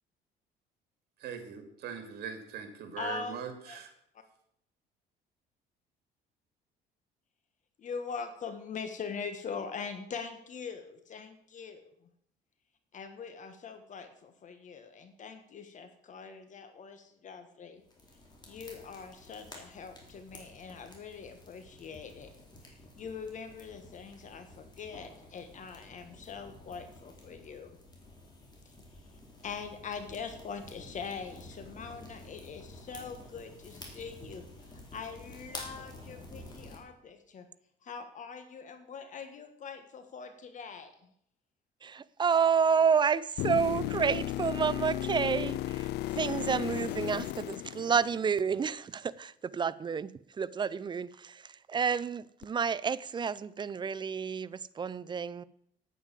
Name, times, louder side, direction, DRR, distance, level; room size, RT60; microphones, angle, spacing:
voice 1, 1.2-3.9, right 7 dB, 70° right, 7 dB, 2.4 m, -41 dB
voice 2, 3.0-3.8 4.1-4.2 7.8-11.8 12.9-17.8 18.4-22.3 22.7-27.8 28.6-28.7 29.1-37.5 37.8-41.1, left 5 dB, 45° left, 8 dB, 1.5 m, -43 dB
sound 1, 17.9-36.8, left 2 dB, 25° left, 3.7 m, -50 dB
voice 3, 41.8-55.4, right 6 dB, 25° right, 17 dB, 0.5 m, -30 dB
sound 2, 43.4-48.4 52.4-52.5, left 15 dB, 75° left, 0.4 m, -35 dB
9.3 x 9.1 x 7.5 m, 0.71 s
cardioid pair, 110°, 17 cm